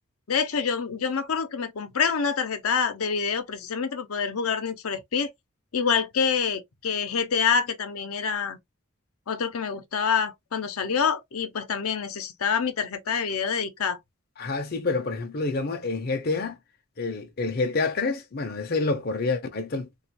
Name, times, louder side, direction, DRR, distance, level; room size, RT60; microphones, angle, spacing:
voice 1, 0.3-5.3 5.7-8.6 9.3-14.0, left 6 dB, 85° left, 0.7 m, -26 dB
voice 2, 14.4-16.6 17.0-19.9, left 3 dB, 45° left, 0.6 m, -28 dB
3.4 x 2.4 x 2.8 m
head